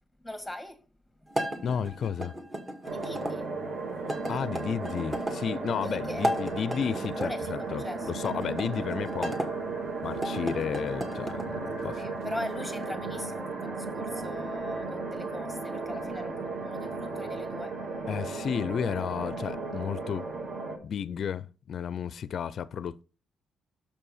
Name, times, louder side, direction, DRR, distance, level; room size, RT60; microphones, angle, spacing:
voice 1, 0.2-0.8 2.9-3.5 5.8-6.3 7.2-8.1 11.8-17.8, left 1 dB, ahead, 1.8 m, -40 dB
sound 1, 1.3-3.3 4.1-5.4 6.1-7.3 8.2-9.5 10.1-11.5, equal, 25° right, 1.8 m, -34 dB
voice 2, 1.6-2.3 4.3-9.3 10.0-12.0 18.1-20.3 20.8-23.0, left 7 dB, 60° left, 0.4 m, -32 dB
sound 2, 2.6-14.6, right 1 dB, 85° right, 4.9 m, -53 dB
sound 3, 2.9-20.8, right 3 dB, 50° right, 2.2 m, -35 dB
6.7 x 5.5 x 5.5 m
cardioid pair, 90°, 0 cm